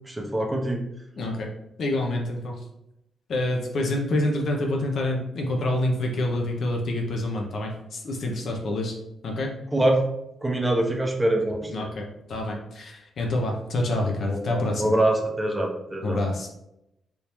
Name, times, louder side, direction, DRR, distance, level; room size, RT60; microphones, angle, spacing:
voice 1, 0.1-0.8 9.7-10.1 10.4-11.7 14.3-16.2, right 1 dB, 10° right, 1 dB, 0.7 m, -24 dB
voice 2, 1.2-1.5 1.8-2.6 3.3-9.0 9.2-9.6 11.7-14.9 16.0-16.5, left 1 dB, 60° left, 0 dB, 0.6 m, -27 dB
3.5 x 2.7 x 3.0 m, 0.84 s
cardioid pair, 105°, 0 cm